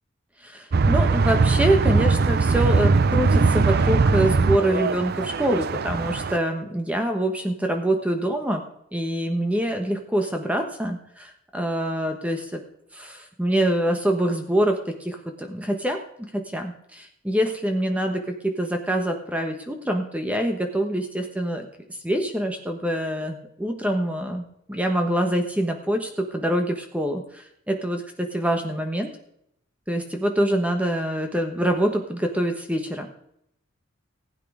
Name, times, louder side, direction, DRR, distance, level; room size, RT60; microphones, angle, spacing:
voice 1, 0.4-8.6 8.9-12.6 12.9-21.7 22.0-29.1 29.9-33.1, right 1 dB, 5° right, 4 dB, 1.2 m, -25 dB
sound 1, 0.7-6.4, right 4 dB, 45° right, 0.5 m, -20 dB
16.0 x 8.7 x 5.0 m, 0.74 s
head